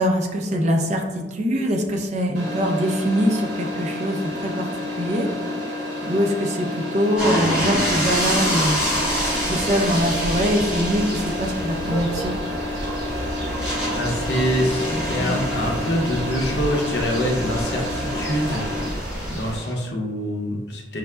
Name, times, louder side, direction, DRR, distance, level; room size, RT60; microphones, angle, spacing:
voice 1, 0.0-5.3 6.1-8.8 9.5-12.3, equal, 40° right, 1 dB, 0.5 m, -23 dB
sound 1, 2.3-18.9, left 1 dB, 80° right, 0.9 m, -30 dB
sound 2, 7.2-19.7, equal, 5° right, 1.1 m, -28 dB
sound 3, 7.5-19.6, right 1 dB, 65° right, 1.5 m, -33 dB
voice 2, 13.9-18.6 19.3-21.0, equal, 75° left, -1 dB, 0.7 m, -25 dB
5.7 x 2.0 x 2.2 m, 1.2 s
head